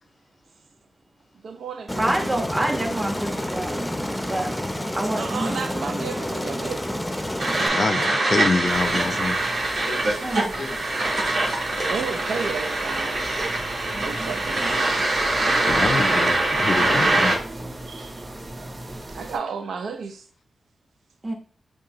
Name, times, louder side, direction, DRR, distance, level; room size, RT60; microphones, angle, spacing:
voice 1, 1.4-2.5 5.2-7.5 8.1-8.9 9.2-11.0 11.9-13.2 13.5-15.1 17.2-17.4 17.9-18.7 19.1-20.3, right 5 dB, 85° right, 0.5 m, -35 dB
Aircraft, 1.9-7.7, left 1 dB, 10° left, 0.6 m, -29 dB
voice 2, 2.0-3.8 4.3-4.5 4.9-5.8 9.9-10.6 13.6-14.4 21.2-21.3, right 1 dB, 25° right, 1.2 m, -28 dB
sound 1, 7.4-17.3, right 2 dB, 70° right, 1.4 m, -23 dB
voice 3, 7.7-9.4 15.7-17.3, left 4 dB, 60° left, 0.4 m, -25 dB
sound 2, 8.6-19.4, right 1 dB, 50° right, 1.6 m, -38 dB
5.1 x 2.3 x 3.0 m
cardioid pair, 45°, 0 cm